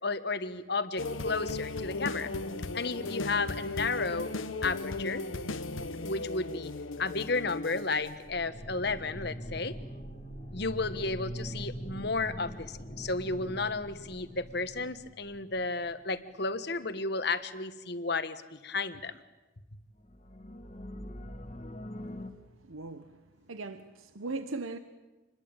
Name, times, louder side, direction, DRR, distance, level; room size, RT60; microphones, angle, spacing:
voice 1, 0.0-2.3 2.7-4.3 4.6-5.2 6.0-6.7 7.0-9.7 10.5-19.2, left 3 dB, 55° left, 1.4 m, -33 dB
sound 1, 1.0-8.9 9.4-9.5, left 2 dB, 80° left, 1.1 m, -36 dB
sound 2, 7.7-16.0 20.0-22.3, equal, 30° left, 1.7 m, -43 dB
voice 2, 22.6-24.8, right 3 dB, 90° right, 1.1 m, -39 dB
27.5 x 21.0 x 8.9 m
head